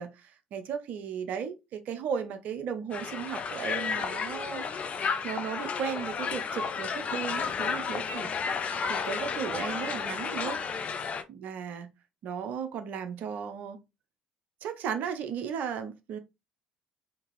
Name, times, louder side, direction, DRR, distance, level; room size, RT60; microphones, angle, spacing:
voice 1, 0.0-8.3 8.9-10.6 11.3-11.9 12.2-13.8 14.6-16.2, right 7 dB, 55° right, 0.6 m, -35 dB
Crowd, 2.9-11.2, left 6 dB, 40° left, 0.5 m, -32 dB
3.6 x 2.7 x 3.1 m
figure-of-eight pair, 55°, 3 cm